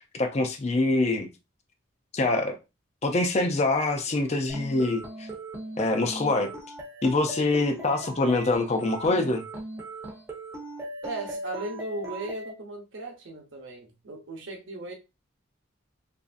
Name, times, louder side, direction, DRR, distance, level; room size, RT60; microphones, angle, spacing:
voice 1, 0.1-1.3 2.1-2.6 3.0-5.3 5.8-6.5 7.0-9.4, left 2 dB, 30° left, 0.4 m, -25 dB
sound 1, 4.5-12.5, right 1 dB, 15° right, 0.6 m, -39 dB
voice 2, 7.4-7.9 11.0-14.9, right 2 dB, 70° right, 0.8 m, -37 dB
3.0 x 2.6 x 2.5 m
head